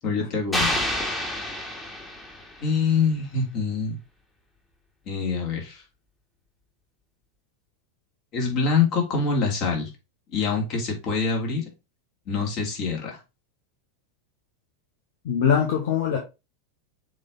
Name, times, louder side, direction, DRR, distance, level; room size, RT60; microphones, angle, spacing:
voice 1, 0.0-0.8 2.6-4.0 5.1-5.8 8.3-9.9 10.3-11.6 12.3-13.2, left 5 dB, 45° left, 3.2 m, -25 dB
sound 1, 0.5-2.7, left 1 dB, 15° left, 2.2 m, -28 dB
voice 2, 15.2-16.2, left 7 dB, 60° left, 1.5 m, -22 dB
7.4 x 3.6 x 4.0 m
figure-of-eight pair, 90°, 0 cm